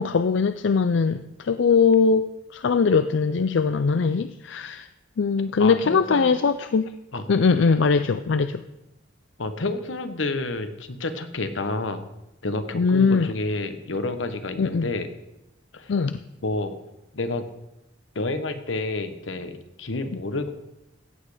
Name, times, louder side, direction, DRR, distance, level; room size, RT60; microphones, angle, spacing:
voice 1, 0.0-4.9 5.2-6.9 7.3-8.6 12.8-13.3 14.6-14.9 15.9-16.2, left 5 dB, 70° left, 11 dB, 0.4 m, -21 dB
voice 2, 5.6-6.3 7.1-7.2 9.4-12.0 12.4-15.1 15.7-15.9 16.4-16.8 17.1-17.4 18.1-20.5, left 2 dB, 90° left, 9 dB, 1.2 m, -29 dB
15.5 x 8.5 x 5.0 m, 0.91 s
head